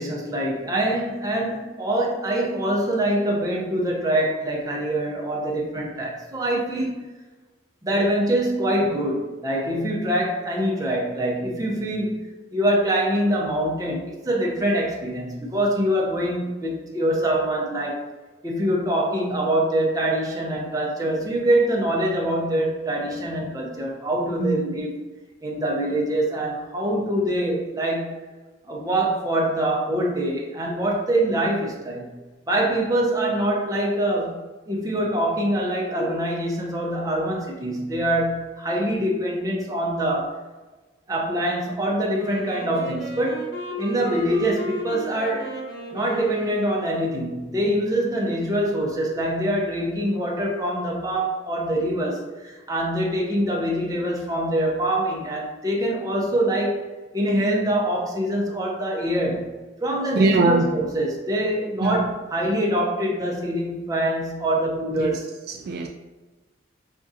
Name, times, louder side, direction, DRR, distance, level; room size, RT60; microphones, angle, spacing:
voice 1, 0.0-7.0 7.8-18.1 18.4-24.9 25.4-28.2 28.7-32.1 32.5-40.4 41.1-45.6 45.9-56.9 57.1-59.5 59.8-65.3, right 1 dB, 20° right, -2 dB, 0.6 m, -24 dB
voice 2, 24.4-24.8 60.1-60.6 61.8-62.1 64.9-65.2 65.5-65.9, right 3 dB, 55° right, 2 dB, 0.3 m, -22 dB
Wind instrument woodwind instrument, 42.1-47.3, right 2 dB, 60° left, 1.1 m, -34 dB
5.1 x 2.4 x 2.6 m, 1.2 s
head